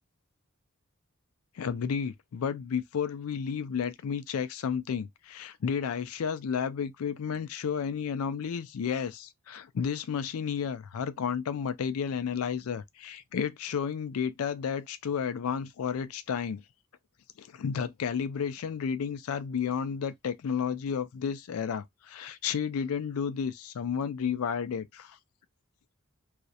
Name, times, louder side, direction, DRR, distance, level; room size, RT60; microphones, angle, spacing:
voice 1, 1.6-16.6 17.4-25.2, left 7 dB, 85° left, 0.4 m, -32 dB
2.4 x 2.0 x 2.6 m
head